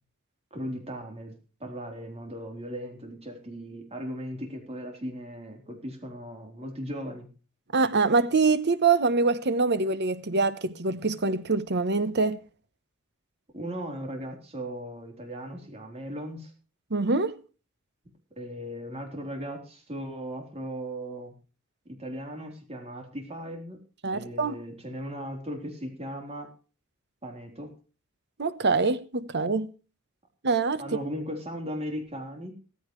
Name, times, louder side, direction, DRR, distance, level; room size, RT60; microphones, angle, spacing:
voice 1, 0.5-1.3 1.6-7.3 13.5-16.5 18.4-21.4 21.9-23.8 24.1-26.5 27.2-27.7 30.8-32.5, equal, 30° right, 3.7 m, -37 dB
voice 2, 7.7-12.4 16.9-17.4 24.0-24.5 28.4-29.7 30.4-30.8, right 4 dB, 55° right, 1.0 m, -24 dB
16.0 x 15.0 x 3.2 m
head